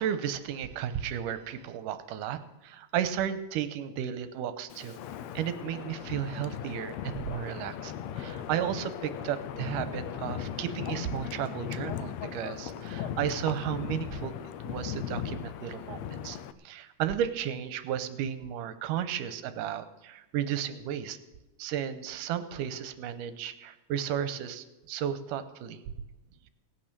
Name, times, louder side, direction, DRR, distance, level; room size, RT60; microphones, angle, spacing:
voice 1, 0.0-5.0 5.4-14.3 14.6-16.4 16.6-21.2 21.6-25.8, right 9 dB, 80° right, 11 dB, 2.4 m, -33 dB
Wind, 4.7-16.5, left 9 dB, 80° left, 1.6 m, -38 dB
17.5 x 9.0 x 6.7 m, 1.1 s
omnidirectional pair, 3.8 m